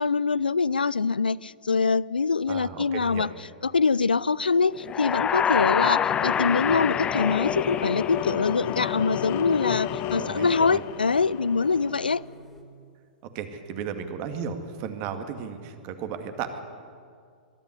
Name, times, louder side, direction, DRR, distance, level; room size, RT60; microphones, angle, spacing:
voice 1, 0.0-3.3 3.6-12.2, left 4 dB, 90° left, 0.4 m, -24 dB
voice 2, 2.5-3.3 10.2-10.8 13.3-16.6, right 7 dB, 45° right, 2.1 m, -34 dB
sound 1, 4.3-12.2, left 10 dB, 40° left, 1.1 m, -32 dB
sound 2, 4.8-8.7, left 8 dB, 20° left, 0.5 m, -27 dB
sound 3, 6.3-12.6, left 1 dB, ahead, 3.2 m, -49 dB
22.0 x 12.5 x 9.6 m
hypercardioid pair, 110°, 5 cm